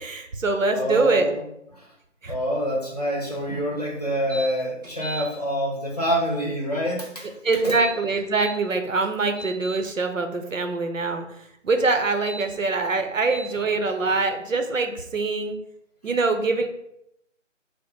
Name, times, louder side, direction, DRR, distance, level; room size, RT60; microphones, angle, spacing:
voice 1, 0.0-1.3 2.2-2.4 7.2-11.2 11.6-15.6 16.0-16.7, right 3 dB, 90° right, 5 dB, 0.7 m, -24 dB
voice 2, 0.7-1.4 1.8-1.9 2.3-7.3 7.6-7.8 16.0-16.1, equal, 30° left, -2 dB, 0.7 m, -26 dB
sound 1, 4.3-4.5 4.8-5.2 7.6-8.5 9.0-9.8 12.1-12.4 13.3-13.5, right 1 dB, 15° right, 1.0 m, -36 dB
4.7 x 2.0 x 3.1 m, 0.78 s
figure-of-eight pair, 160°, 38 cm